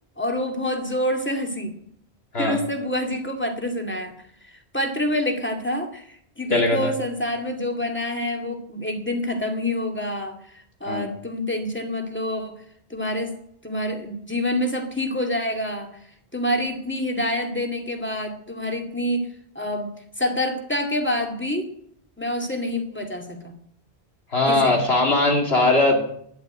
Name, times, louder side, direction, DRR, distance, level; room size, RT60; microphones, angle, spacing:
voice 1, 0.2-1.8 2.4-4.2 4.4-12.6 12.9-13.3 13.6-15.9 16.3-21.7 22.2-23.5 24.5-24.8, left 1 dB, 10° left, 4 dB, 2.3 m, -27 dB
voice 2, 6.5-6.9 10.9-11.1 24.3-26.0, left 2 dB, 70° left, 1 dB, 2.8 m, -20 dB
11.5 x 11.0 x 9.0 m, 0.68 s
omnidirectional pair, 1.1 m